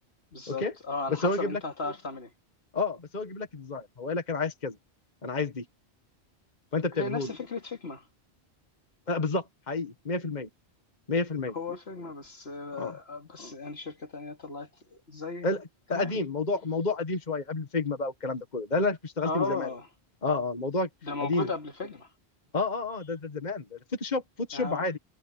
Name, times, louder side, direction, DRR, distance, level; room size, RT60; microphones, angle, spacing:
voice 1, 0.3-2.3 7.0-8.1 11.5-14.7 15.1-15.5 15.9-16.2 19.2-19.9 21.0-22.1 24.5-24.8, left 3 dB, 70° left, 2.8 m, -35 dB
voice 2, 1.1-1.6 2.7-4.8 5.2-5.7 6.7-7.3 9.1-10.5 11.1-11.5 12.8-12.9 15.4-19.7 20.2-20.9 21.2-21.5 22.5-25.0, left 3 dB, 40° left, 1.8 m, -30 dB
omnidirectional pair, 1.1 m